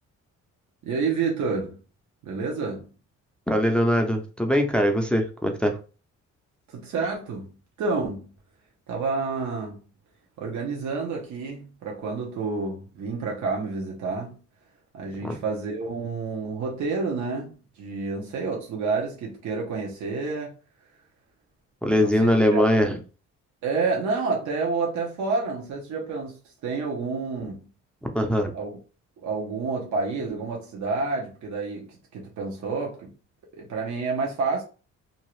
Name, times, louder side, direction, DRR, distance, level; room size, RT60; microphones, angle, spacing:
voice 1, 0.8-1.8 2.2-2.9 6.7-8.3 8.9-9.8 10.4-14.4 14.9-20.5 22.0-22.6 23.6-26.4 26.6-27.7 28.5-28.8 29.2-33.1 33.5-34.6, right 4 dB, 70° right, 0.9 m, -29 dB
voice 2, 3.5-5.8 15.2-15.4 21.8-23.0 28.1-28.5, equal, 5° left, 0.5 m, -22 dB
2.8 x 2.3 x 3.0 m
cardioid pair, 90°, 30 cm